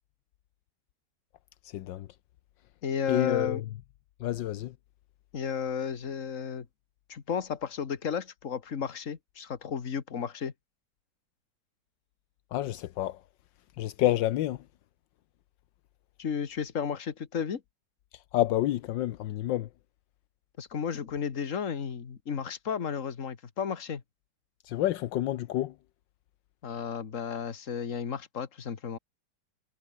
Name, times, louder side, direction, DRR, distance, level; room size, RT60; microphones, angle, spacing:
voice 1, 1.6-2.1 3.1-3.6 4.2-4.7 12.5-13.2 13.8-14.6 18.3-19.7 24.6-25.7, left 14 dB, 80° left, 1.4 m, -29 dB
voice 2, 2.8-3.6 5.3-6.7 7.1-10.5 16.2-17.6 20.6-24.0 26.6-29.0, left 7 dB, 45° left, 1.9 m, -33 dB
omnidirectional pair, 2.0 m